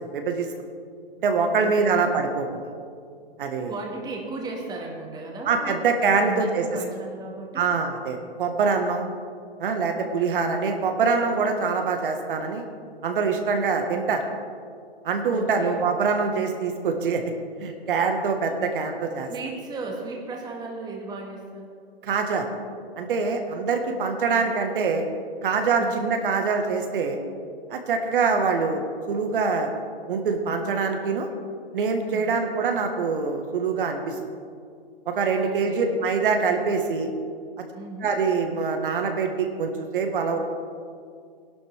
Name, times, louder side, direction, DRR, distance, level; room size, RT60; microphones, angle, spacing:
voice 1, 0.1-0.5 1.2-2.6 3.4-3.7 5.4-6.6 7.5-9.1 9.6-12.6 13.0-14.2 15.0-17.2 17.6-19.3 22.1-22.5 23.0-25.0 25.4-27.2 27.7-29.7 30.1-31.3 31.7-34.1 35.0-37.1 38.0-40.4, right 5 dB, 60° right, 4 dB, 1.6 m, -24 dB
voice 2, 1.6-2.2 3.7-5.8 6.2-7.7 15.3-16.1 19.3-21.7 25.8-26.1 32.1-32.5 35.3-36.0 37.7-38.1, right 3 dB, 15° right, -1 dB, 1.8 m, -36 dB
19.0 x 11.5 x 3.5 m, 2.2 s
hypercardioid pair, 130°, 30 cm